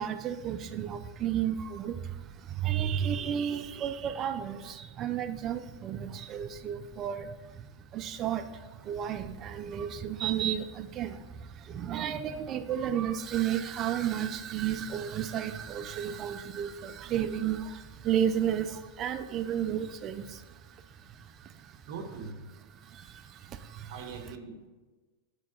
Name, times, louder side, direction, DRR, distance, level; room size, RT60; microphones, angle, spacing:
voice 1, 0.0-7.6 7.9-20.4 21.1-21.7 22.8-24.1, right 9 dB, 25° right, 11 dB, 0.3 m, -33 dB
voice 2, 21.9-22.4 23.9-24.7, right 4 dB, 50° right, 5 dB, 1.0 m, -41 dB
6.2 x 3.7 x 5.6 m, 1.2 s
supercardioid pair, 155°, 0 cm